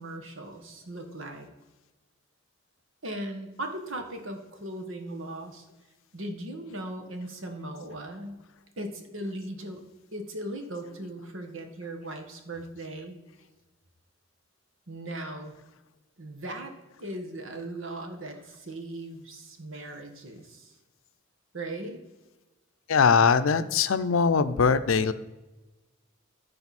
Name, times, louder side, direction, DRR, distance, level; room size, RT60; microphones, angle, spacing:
voice 1, 0.0-1.5 3.0-5.6 6.1-8.4 8.8-9.8 10.1-13.2 14.9-15.5 16.2-16.7 17.0-20.7 21.5-22.0, right 1 dB, 75° right, 4 dB, 1.5 m, -38 dB
voice 2, 22.9-25.1, left 5 dB, 85° left, 12 dB, 0.6 m, -21 dB
14.0 x 5.1 x 4.2 m, 1.1 s
head